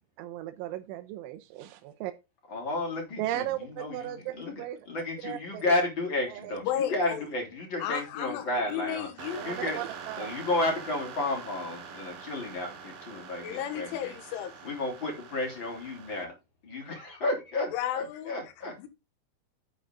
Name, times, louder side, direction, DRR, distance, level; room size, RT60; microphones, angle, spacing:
voice 1, 0.2-2.1 3.2-4.8 5.2-5.7 6.3-6.6 9.3-10.4, right 13 dB, 90° right, 3.1 m, -36 dB
voice 2, 2.5-9.1 9.4-9.8 10.2-14.1 14.6-16.3 16.6-18.7, left 2 dB, 25° left, 3.9 m, -32 dB
voice 3, 6.6-7.2 7.8-9.5 13.4-14.6 17.7-18.3 18.8-18.9, left 10 dB, 85° left, 3.8 m, -33 dB
sound 1, 9.2-16.2, right 6 dB, 60° right, 1.6 m, -44 dB
9.1 x 8.2 x 3.9 m
omnidirectional pair, 5.4 m